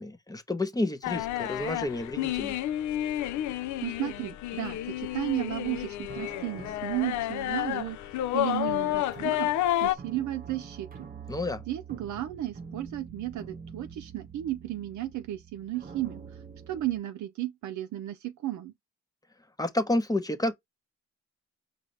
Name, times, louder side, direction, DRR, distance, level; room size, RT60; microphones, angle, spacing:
voice 1, 0.0-2.5 11.3-11.6 19.6-20.5, left 2 dB, 10° left, 0.8 m, -30 dB
sound 1, 1.0-10.0, left 13 dB, 70° left, 0.5 m, -30 dB
voice 2, 3.8-8.0 8.3-9.5 9.8-11.1 11.7-16.2 16.7-18.7, right 14 dB, 70° right, 0.7 m, -34 dB
sound 2, 5.6-5.7 6.1-8.1 8.7-17.0, right 6 dB, 30° right, 0.9 m, -46 dB
4.9 x 2.5 x 3.2 m
cardioid pair, 90°, 30 cm